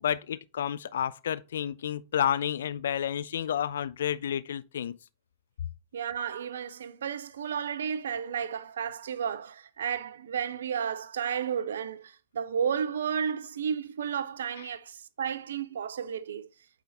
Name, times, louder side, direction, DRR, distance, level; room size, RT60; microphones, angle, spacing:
voice 1, 0.0-5.0 14.6-14.7, left 9 dB, 65° left, 0.4 m, -30 dB
voice 2, 5.9-16.5, right 7 dB, 65° right, 0.5 m, -32 dB
8.3 x 3.9 x 4.1 m
figure-of-eight pair, 90°, 0 cm